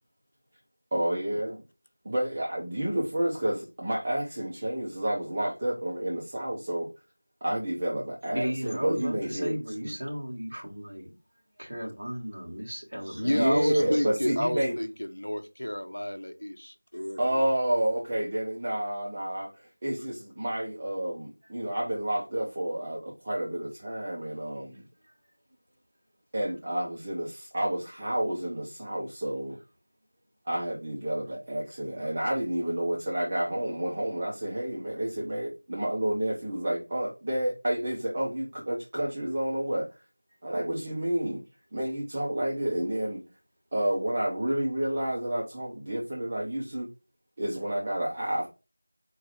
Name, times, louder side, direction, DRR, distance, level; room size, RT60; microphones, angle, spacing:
voice 1, 0.9-1.6 2.0-6.9 7.4-9.5 9.8-9.9 13.3-14.7 17.2-24.8 26.3-29.6 30.5-39.9 40.4-41.4 41.7-43.2 43.7-46.9 47.4-48.5, right 1 dB, 15° right, 0.5 m, -30 dB
voice 2, 8.3-11.1 11.6-14.1 25.0-25.1, equal, 35° right, 1.3 m, -35 dB
voice 3, 13.2-17.2, left 1 dB, 70° left, 0.7 m, -30 dB
4.5 x 2.4 x 4.8 m
figure-of-eight pair, 175°, 0 cm